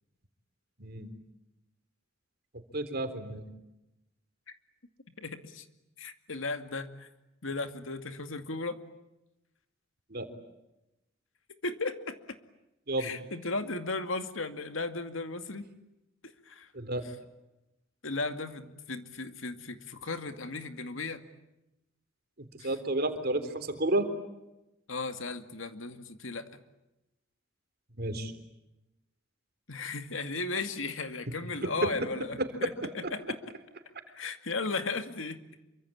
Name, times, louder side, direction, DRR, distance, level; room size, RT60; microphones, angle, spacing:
voice 1, 2.7-3.4 10.1-10.3 12.9-13.1 16.7-17.1 22.6-24.1 28.0-28.3 31.6-31.7 32.4-32.7, right 1 dB, 55° right, 9 dB, 3.7 m, -31 dB
voice 2, 5.2-5.6 6.0-7.1 7.4-8.8 11.6-12.4 13.0-15.7 16.5-16.7 17.0-17.1 18.0-21.2 22.6-22.8 24.9-26.6 29.7-33.4 34.1-35.4, left 3 dB, 85° left, 8 dB, 2.3 m, -36 dB
27.5 x 24.5 x 8.7 m, 0.93 s
head